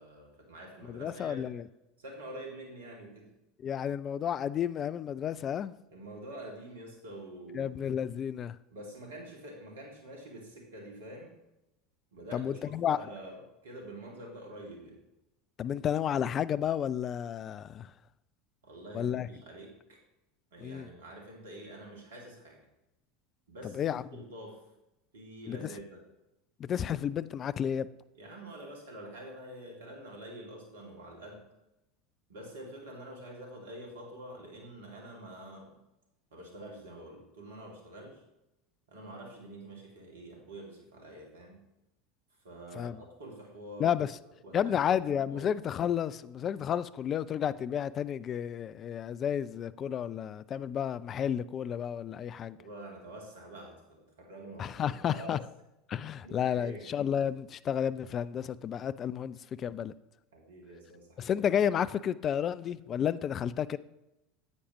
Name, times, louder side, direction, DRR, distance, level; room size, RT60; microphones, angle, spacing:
voice 1, 0.0-1.6 2.0-3.3 5.9-7.7 8.7-11.3 12.1-15.0 18.6-20.0 20.5-22.6 23.5-24.6 25.1-26.0 28.1-31.4 32.3-35.8 36.3-38.2 38.9-41.6 42.4-44.0 44.4-45.7 52.6-55.4 56.2-56.9 60.3-61.4, right 1 dB, 70° right, 0 dB, 2.3 m, -47 dB
voice 2, 0.9-1.6 3.6-5.7 7.5-8.6 12.3-13.0 15.6-17.9 18.9-19.3 20.6-20.9 23.7-24.0 25.5-25.7 26.6-27.9 42.7-43.0 43.8-44.2 44.5-52.6 54.6-55.4 55.9-59.9 61.2-63.8, left 9 dB, 35° left, 17 dB, 0.3 m, -31 dB
9.6 x 8.5 x 3.0 m, 0.92 s
figure-of-eight pair, 75°, 0 cm